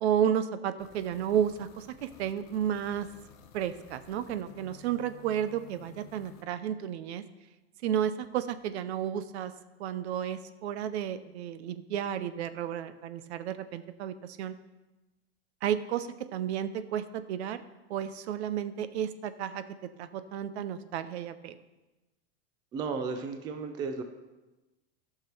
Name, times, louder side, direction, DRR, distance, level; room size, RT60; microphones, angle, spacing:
voice 1, 0.0-3.1 3.5-7.2 7.8-9.5 9.8-14.5 15.6-17.6 17.9-19.6 20.0-21.6, right 9 dB, 75° right, 13 dB, 0.7 m, -32 dB
sound 1, 0.8-6.4, left 7 dB, 30° left, 0.7 m, -54 dB
voice 2, 22.7-24.0, right 5 dB, 15° right, 7 dB, 0.3 m, -34 dB
13.0 x 6.0 x 4.4 m, 1.1 s
supercardioid pair, 155°, 34 cm